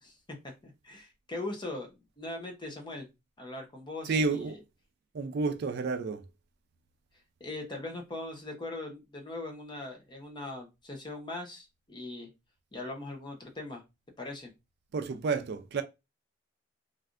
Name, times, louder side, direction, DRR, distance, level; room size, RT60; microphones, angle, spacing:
voice 1, 0.0-3.1 3.4-4.6 7.4-12.3 12.7-13.8 14.2-14.5, left 2 dB, 25° left, 0.7 m, -40 dB
voice 2, 4.0-4.6 5.1-6.3 14.9-15.8, right 4 dB, 60° right, 0.4 m, -30 dB
3.3 x 2.5 x 2.4 m
head